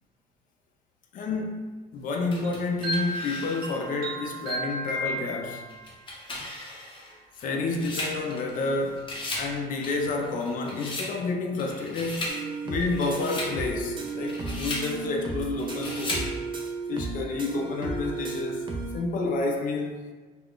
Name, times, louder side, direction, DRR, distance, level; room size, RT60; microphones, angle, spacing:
voice 1, 1.1-5.7 7.4-16.4 16.9-20.0, left 3 dB, 50° left, 1 dB, 0.5 m, -30 dB
sound 1, 2.3-3.8 4.4-4.5 5.7-8.7 9.0-9.5 9.8-11.1 11.6-12.4 12.8-13.5 14.1-14.9 15.6-16.3, left 2 dB, 30° left, 0.8 m, -36 dB
sound 2, 2.4-5.9, equal, 65° right, 0.8 m, -33 dB
sound 3, 12.3-19.0, right 3 dB, 30° right, 0.4 m, -34 dB
2.4 x 2.2 x 3.6 m, 1.3 s
cardioid pair, 110°, 17 cm